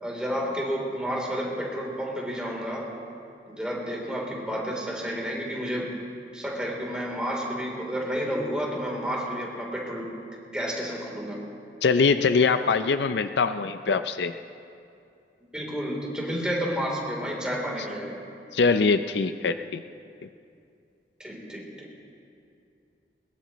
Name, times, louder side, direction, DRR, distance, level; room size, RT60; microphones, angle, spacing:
voice 1, 0.0-2.9 3.5-5.9 6.3-10.1 10.5-11.4 15.4-18.2 21.2-21.9, equal, 5° right, -3 dB, 3.4 m, -31 dB
voice 2, 11.8-14.3 18.5-19.8, left 4 dB, 70° left, 10 dB, 0.5 m, -23 dB
21.5 x 21.5 x 3.1 m, 2.5 s
head